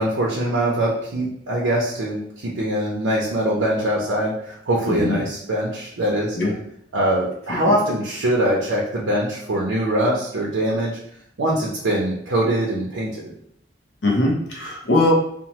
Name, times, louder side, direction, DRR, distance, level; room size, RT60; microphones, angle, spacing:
voice 1, 0.0-6.4 6.9-11.0 11.4-13.3, right 1 dB, 80° right, -4 dB, 0.5 m, -23 dB
voice 2, 4.9-5.2 6.4-6.5 14.0-15.1, left 2 dB, 70° left, -2 dB, 0.7 m, -20 dB
2.9 x 2.0 x 2.9 m, 0.69 s
head